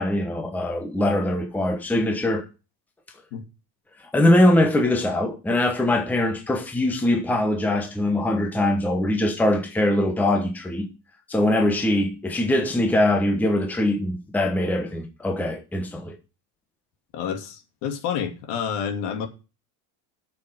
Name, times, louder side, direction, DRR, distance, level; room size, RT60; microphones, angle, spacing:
voice 1, 0.0-2.4 4.1-10.9 11.3-16.2, left 1 dB, 5° left, 1.0 m, -22 dB
voice 2, 17.1-19.3, left 7 dB, 60° left, 2.7 m, -29 dB
9.2 x 6.9 x 7.6 m
cardioid pair, 165°, 45 cm